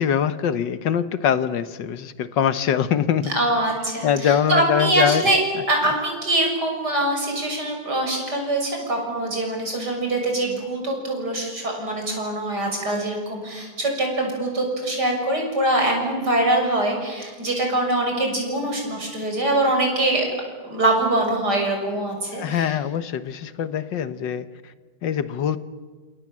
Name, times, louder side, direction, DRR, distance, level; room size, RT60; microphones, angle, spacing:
voice 1, 0.0-3.3 4.0-5.3 22.4-24.5 25.0-25.6, left 8 dB, 75° left, 12 dB, 1.8 m, -23 dB
voice 2, 3.3-5.4 5.7-20.3 20.6-22.8, right 1 dB, 60° right, 2 dB, 7.3 m, -23 dB
28.5 x 28.0 x 7.5 m, 1.5 s
omnidirectional pair, 2.0 m